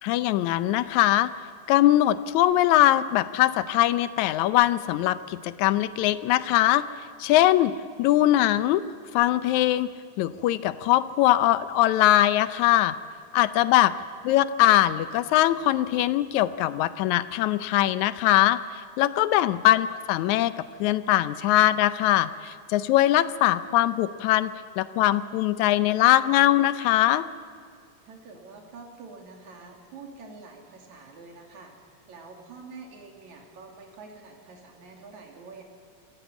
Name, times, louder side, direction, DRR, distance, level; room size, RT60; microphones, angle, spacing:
voice 1, 0.0-1.3 1.7-6.8 7.2-7.7 8.0-8.8 9.1-9.9 10.2-12.9 13.3-13.9 14.2-18.6 19.0-20.5 20.8-27.3, left 14 dB, 80° left, 14 dB, 2.1 m, -21 dB
voice 2, 28.0-35.6, right 4 dB, 75° right, 1 dB, 4.0 m, -46 dB
26.0 x 16.0 x 8.2 m, 2.1 s
omnidirectional pair, 3.3 m